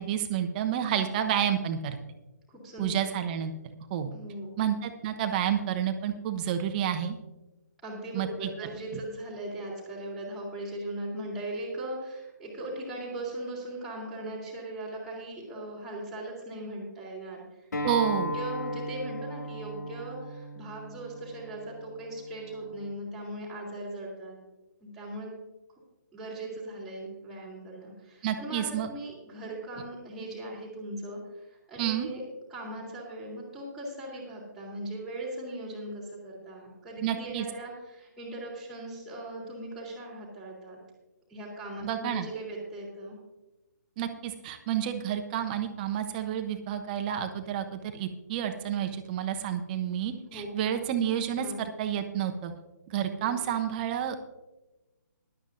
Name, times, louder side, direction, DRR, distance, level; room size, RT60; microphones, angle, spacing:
voice 1, 0.0-2.0 2.8-3.5 3.9-4.1 4.6-7.2 8.1-8.5 17.8-18.4 28.2-28.9 31.8-32.1 37.0-37.5 41.8-42.3 44.0-52.5 52.9-54.2, right 9 dB, 30° right, 7 dB, 1.1 m, -30 dB
voice 2, 2.5-2.9 4.1-4.5 7.8-17.9 18.3-24.4 24.8-25.3 26.1-32.2 32.5-40.8 41.3-43.2 50.3-50.8 51.4-51.6 53.2-53.4, right 1 dB, ahead, -9 dB, 3.3 m, -39 dB
Acoustic guitar, 17.7-22.9, left 1 dB, 65° left, 1.9 m, -37 dB
19.0 x 11.5 x 2.6 m, 1.1 s
figure-of-eight pair, 140°, 10 cm